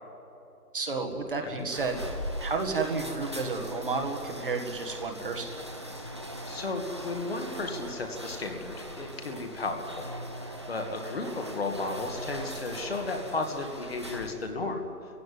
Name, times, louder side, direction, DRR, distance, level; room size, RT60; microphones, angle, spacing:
voice 1, 0.7-2.0 2.4-5.5, right 4 dB, 35° right, 3 dB, 1.8 m, -31 dB
sound 1, 1.1-14.6, equal, 20° right, 0.8 m, -40 dB
voice 2, 6.5-10.1 10.7-14.9, left 3 dB, 40° left, 4 dB, 2.1 m, -34 dB
27.0 x 16.0 x 9.6 m, 3.0 s
hypercardioid pair, 170°, 46 cm